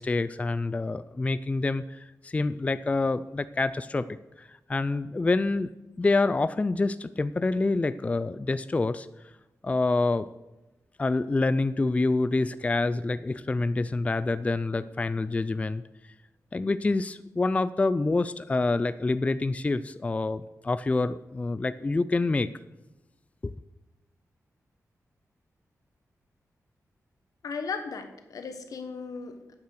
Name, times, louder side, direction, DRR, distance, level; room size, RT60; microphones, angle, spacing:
voice 1, 0.0-4.1 4.4-5.7 6.0-9.1 9.6-10.3 11.0-15.8 16.5-22.5 23.4-23.5, left 3 dB, 25° left, 14 dB, 0.4 m, -27 dB
voice 2, 27.4-29.5, left 5 dB, 85° left, 7 dB, 1.4 m, -36 dB
9.9 x 8.7 x 6.6 m, 0.98 s
wide cardioid pair, 120°, 6 cm